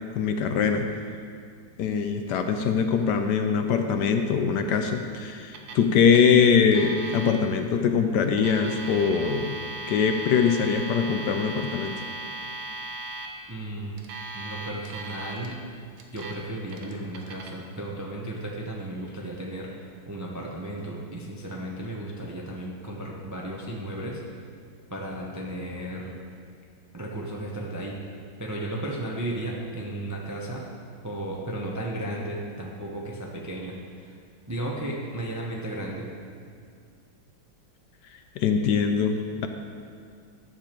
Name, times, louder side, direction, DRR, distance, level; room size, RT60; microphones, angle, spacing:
voice 1, 0.1-0.9 1.8-9.6 9.9-12.0 38.4-39.5, left 6 dB, 70° left, 6 dB, 1.1 m, -22 dB
Alarm, 5.5-5.9 6.1-6.2 6.7-7.3 8.2-13.3 14.0-15.5 16.0-16.4 16.7-17.5, right 2 dB, 75° right, 1.6 m, -37 dB
voice 2, 13.5-14.1 14.3-15.6 16.1-19.7 20.1-24.2 24.9-26.2 26.9-28.0 28.4-30.6 31.0-34.2 34.5-36.1, right 1 dB, 20° right, -2 dB, 0.4 m, -34 dB
11.0 x 6.9 x 4.5 m, 2.2 s
omnidirectional pair, 2.0 m